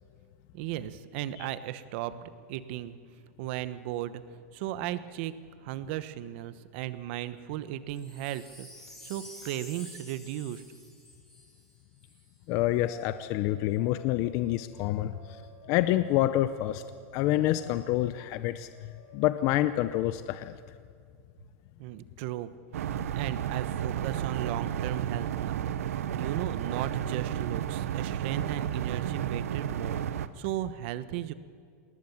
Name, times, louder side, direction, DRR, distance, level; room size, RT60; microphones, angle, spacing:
voice 1, 0.5-3.0 3.4-4.2 4.5-5.3 5.6-8.7 9.0-10.6 21.8-22.5 23.1-30.0 30.4-31.3, right 13 dB, 50° right, 13 dB, 1.1 m, -36 dB
Wind chime, 7.9-12.3 12.9-13.0, left 1 dB, 5° left, 4.3 m, -49 dB
voice 2, 12.5-15.1 15.7-16.8 17.1-18.7 19.1-20.6, left 14 dB, 40° left, 12 dB, 0.7 m, -27 dB
sound 1, 12.8-19.9, left 2 dB, 65° left, 6.1 m, -53 dB
sound 2, 22.7-30.3, right 10 dB, 85° right, 1.0 m, -32 dB
20.5 x 19.0 x 7.3 m, 2.2 s
supercardioid pair, 150°, 8 cm